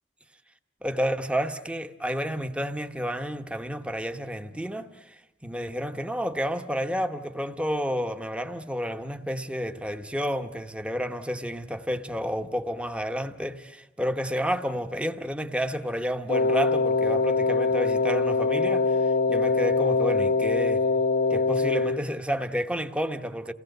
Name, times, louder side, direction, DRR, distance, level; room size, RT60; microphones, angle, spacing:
voice 1, 0.8-20.8 21.3-23.5, equal, 5° right, 1.0 m, -30 dB
Wind instrument woodwind instrument, 16.3-22.0, left 3 dB, 55° left, 0.8 m, -23 dB
28.5 x 18.0 x 7.9 m
head